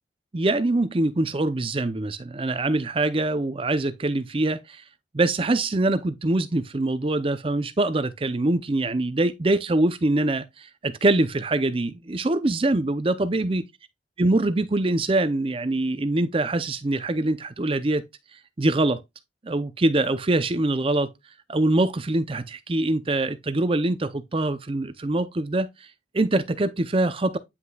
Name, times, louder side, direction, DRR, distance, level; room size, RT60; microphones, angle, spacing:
voice 1, 0.3-4.8 5.1-13.6 14.2-18.0 18.3-19.0 19.4-21.1 21.5-27.4, right 2 dB, 30° right, 0.5 m, -24 dB
9.5 x 5.8 x 2.3 m
head